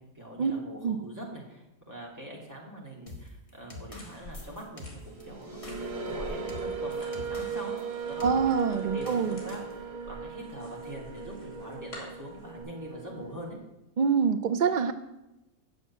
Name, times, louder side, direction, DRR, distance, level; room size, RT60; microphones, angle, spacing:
voice 1, 0.1-7.8 8.1-13.6, right 1 dB, 10° right, -3 dB, 2.7 m, -43 dB
sound 1, 3.1-7.9 8.2-8.4 9.1-9.7, left 2 dB, 25° left, 1.6 m, -46 dB
sound 2, 4.0-12.6, left 1 dB, 60° left, 3.6 m, -49 dB
sound 3, 5.1-13.5, right 5 dB, 50° right, 1.1 m, -37 dB
voice 2, 8.2-9.4 14.0-14.9, right 6 dB, 80° right, 10 dB, 0.4 m, -25 dB
8.0 x 7.1 x 8.5 m, 0.94 s
omnidirectional pair, 1.5 m